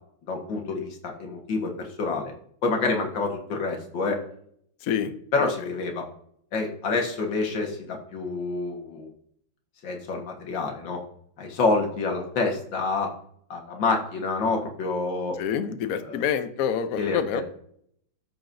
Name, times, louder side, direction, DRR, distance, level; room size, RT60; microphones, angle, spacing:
voice 1, 0.3-2.3 2.6-4.2 5.3-6.1 6.5-9.1 9.8-11.0 11.4-13.1 13.5-15.4 16.0-16.2 17.0-17.4, left 3 dB, 60° left, 2 dB, 2.0 m, -27 dB
voice 2, 4.8-5.1 15.4-17.4, left 8 dB, 85° left, 10 dB, 0.7 m, -27 dB
13.5 x 6.0 x 2.6 m, 0.66 s
omnidirectional pair, 2.4 m